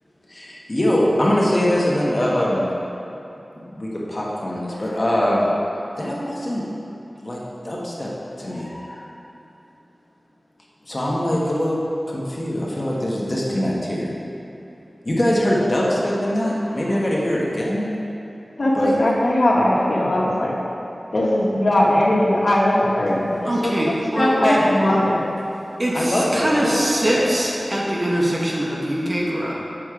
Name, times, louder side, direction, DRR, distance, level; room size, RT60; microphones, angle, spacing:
voice 1, 0.3-2.7 3.5-5.5 6.0-6.6 7.2-8.1 8.4-9.1 10.9-11.8 12.1-14.1 15.0-17.8 18.7-18.9 24.6-24.7 25.9-27.3, equal, 35° left, -4 dB, 1.4 m, -22 dB
voice 2, 18.6-20.5 21.1-23.7 24.1-25.3, left 1 dB, 65° left, -6 dB, 1.7 m, -19 dB
voice 3, 23.4-24.6 25.8-29.5, right 1 dB, 35° right, -4 dB, 1.6 m, -22 dB
7.6 x 6.3 x 5.0 m, 3.0 s
wide cardioid pair, 60°, 0 cm